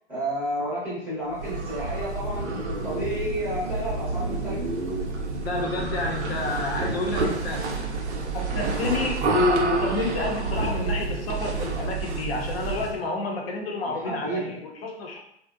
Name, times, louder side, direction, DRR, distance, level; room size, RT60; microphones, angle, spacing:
voice 1, 0.1-4.6 14.0-14.6, right 1 dB, 5° right, -10 dB, 0.6 m, -31 dB
sound 1, 1.3-13.0, right 3 dB, 80° right, 0.6 m, -29 dB
voice 2, 5.4-7.7 8.3-15.2, left 2 dB, 60° left, 1 dB, 0.6 m, -29 dB
2.6 x 2.0 x 2.4 m, 0.74 s
hypercardioid pair, 145°, 34 cm